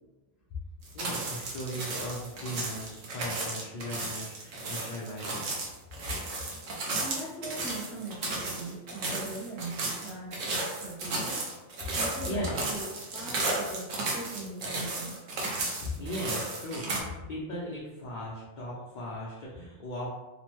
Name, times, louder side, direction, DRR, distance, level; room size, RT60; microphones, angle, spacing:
sound 1, 0.8-17.0, right 2 dB, 85° right, 1.1 m, -34 dB
voice 1, 0.9-5.6 12.2-12.6 15.9-20.1, equal, 55° left, -7 dB, 0.5 m, -37 dB
voice 2, 6.7-11.4 11.9-15.2, right 2 dB, ahead, -7 dB, 0.4 m, -41 dB
2.9 x 2.1 x 3.0 m, 1.1 s
omnidirectional pair, 1.3 m